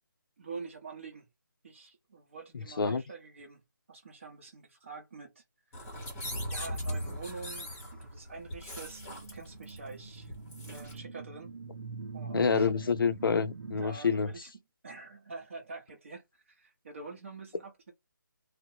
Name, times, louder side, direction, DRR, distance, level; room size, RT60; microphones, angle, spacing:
voice 1, 0.4-1.3 1.6-3.6 3.9-5.4 5.7-5.8 6.5-10.3 10.6-11.5 12.1-12.7 13.8-14.5 14.8-17.9, right 4 dB, 35° right, 0.9 m, -46 dB
sound 1, 5.7-11.0, equal, 10° left, 0.9 m, -40 dB
sound 2, 8.6-13.9, right 4 dB, 80° right, 0.6 m, -44 dB
voice 2, 12.3-14.3, left 5 dB, 90° left, 0.4 m, -27 dB
2.9 x 2.0 x 2.8 m
hypercardioid pair, 175°, 11 cm